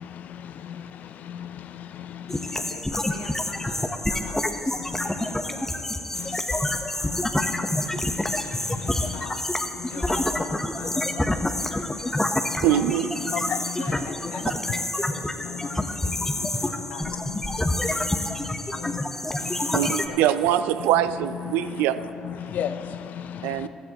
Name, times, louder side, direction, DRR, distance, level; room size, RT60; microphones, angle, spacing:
voice 1, 0.0-2.6 4.9-5.3 6.1-6.4 7.1-9.2 9.8-9.9 10.8-10.9 11.6-11.7 12.2-12.6 13.3-13.8 16.2-16.7 17.1-17.2 17.6-18.5 18.8-19.0 19.4-19.9 21.7-21.8 22.2-23.7, left 9 dB, 65° left, 0.4 m, -36 dB
sound 1, 2.3-20.1, left 1 dB, 10° left, 0.9 m, -28 dB
voice 2, 2.6-7.5 9.0-9.5 9.8-12.9 13.8-19.1 19.6-20.8, left 4 dB, 85° left, 1.2 m, -43 dB
voice 3, 12.6-13.1 19.7-22.0 23.4-23.7, right 11 dB, 80° right, 0.4 m, -23 dB
15.0 x 13.5 x 2.9 m
hypercardioid pair, 55°, 3 cm